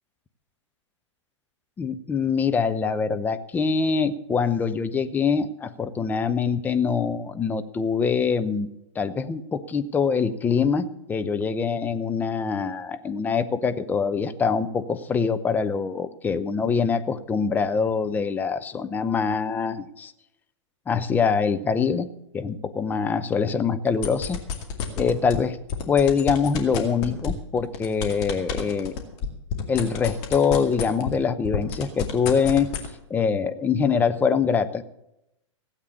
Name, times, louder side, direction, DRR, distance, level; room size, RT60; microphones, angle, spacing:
voice 1, 1.8-8.7 9.0-20.1 20.9-22.1 22.3-24.4 25.0-25.6 25.9-28.9 29.7-32.7 33.1-34.8, left 5 dB, 10° left, 9 dB, 0.6 m, -24 dB
sound 1, 23.9-25.4 25.7-31.2 31.4-32.9, left 6 dB, 35° left, 2.3 m, -29 dB
16.0 x 8.3 x 7.1 m, 0.84 s
figure-of-eight pair, 105°, 16 cm